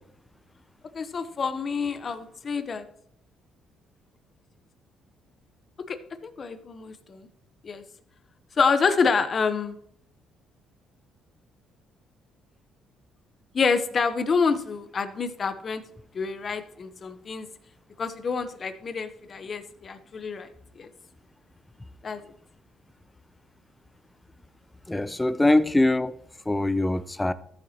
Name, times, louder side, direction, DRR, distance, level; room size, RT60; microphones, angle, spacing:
voice 1, 0.9-2.8 5.9-6.0 6.2-7.3 7.6-7.8 8.6-9.8 13.5-15.8 16.1-17.5 18.0-20.5 20.8-20.9 22.0-22.2, left 5 dB, 35° left, 0.9 m, -27 dB
voice 2, 24.9-26.1 26.5-27.3, left 2 dB, 10° left, 0.5 m, -22 dB
14.0 x 8.7 x 2.9 m
cardioid pair, 115°, 0 cm